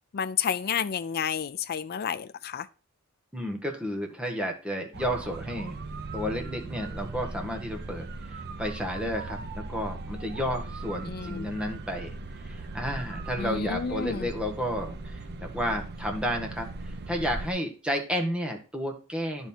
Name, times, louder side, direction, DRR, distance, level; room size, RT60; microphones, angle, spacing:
voice 1, 0.1-2.7 11.1-11.5 13.4-14.3, left 7 dB, 50° left, 0.4 m, -30 dB
voice 2, 3.3-5.8 6.1-9.4 9.7-16.7 17.1-19.5, equal, 5° right, 1.2 m, -32 dB
sound 1, 4.9-17.5, right 2 dB, 50° right, 0.6 m, -38 dB
10.0 x 3.6 x 4.3 m
head